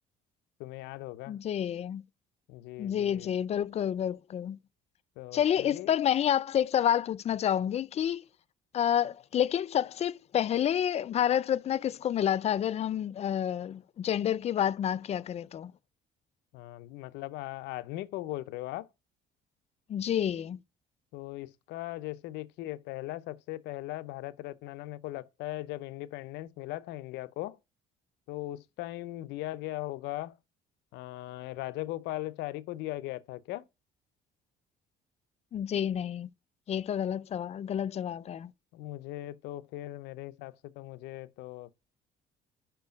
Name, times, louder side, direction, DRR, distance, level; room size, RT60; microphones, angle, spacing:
voice 1, 0.6-1.4 2.5-3.3 5.2-5.9 16.5-18.9 21.1-27.6 28.3-30.4 30.9-33.6 38.7-41.7, left 16 dB, 90° left, 0.6 m, -39 dB
voice 2, 1.3-2.0 2.8-4.6 5.3-8.2 8.7-15.7 19.9-20.6 35.5-36.3 36.7-38.5, left 9 dB, 40° left, 0.4 m, -29 dB
5.7 x 4.5 x 5.1 m
cardioid pair, 110°, 17 cm